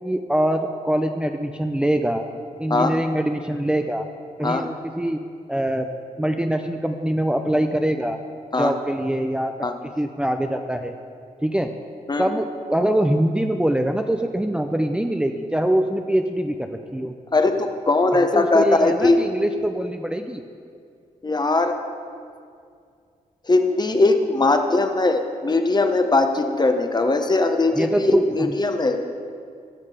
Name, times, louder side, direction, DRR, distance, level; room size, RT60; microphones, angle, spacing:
voice 1, 0.0-2.2 2.6-4.1 4.4-5.2 5.5-5.9 6.2-8.2 8.6-9.5 10.0-10.9 11.4-11.7 12.2-17.1 18.1-20.4 27.8-28.6, right 1 dB, 5° right, 5 dB, 0.6 m, -23 dB
voice 2, 12.1-12.4 17.3-19.2 21.2-21.7 23.5-29.0, left 2 dB, 30° left, 6 dB, 1.1 m, -20 dB
16.0 x 6.6 x 4.9 m, 2.3 s
supercardioid pair, 55°, 15 cm